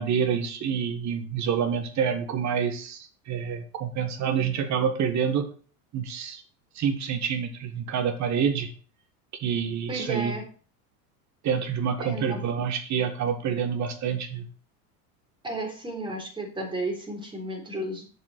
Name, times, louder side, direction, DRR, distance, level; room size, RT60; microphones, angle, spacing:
voice 1, 0.0-5.5 5.9-6.4 6.7-8.7 9.4-10.4 11.4-14.5, right 7 dB, 40° right, 8 dB, 1.7 m, -27 dB
voice 2, 9.9-10.4 12.0-12.5 15.4-18.1, right 1 dB, 10° right, 0 dB, 3.7 m, -33 dB
8.0 x 5.4 x 6.5 m, 0.40 s
supercardioid pair, 120°, 44 cm